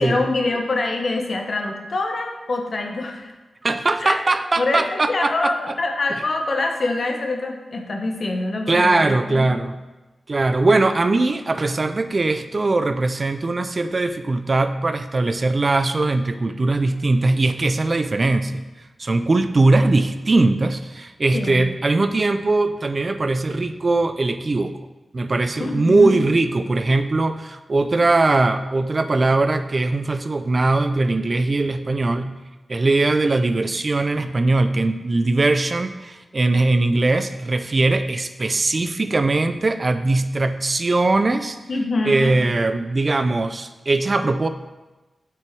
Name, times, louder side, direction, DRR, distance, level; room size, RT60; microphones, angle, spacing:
voice 1, 0.0-3.3 4.0-4.1 4.6-9.5 21.3-21.7 25.6-26.1 41.7-42.3, left 2 dB, 50° left, 3 dB, 0.9 m, -25 dB
voice 2, 3.6-5.5 8.7-9.7 10.3-18.6 19.0-24.7 25.1-32.3 32.7-41.6 42.1-44.5, right 2 dB, 35° right, 10 dB, 0.3 m, -20 dB
6.0 x 4.6 x 4.6 m, 1.1 s
wide cardioid pair, 105°, 0 cm